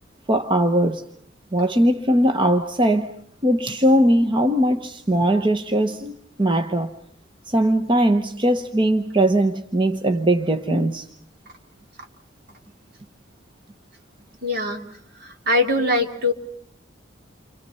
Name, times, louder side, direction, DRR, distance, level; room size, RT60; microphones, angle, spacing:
voice 1, 0.3-1.0 1.5-3.1 3.4-6.9 7.5-11.1, right 1 dB, 25° right, 1.1 m, -20 dB
voice 2, 14.4-14.8 15.2-16.3, left 2 dB, 60° right, 3.0 m, -22 dB
29.5 x 26.5 x 5.6 m
head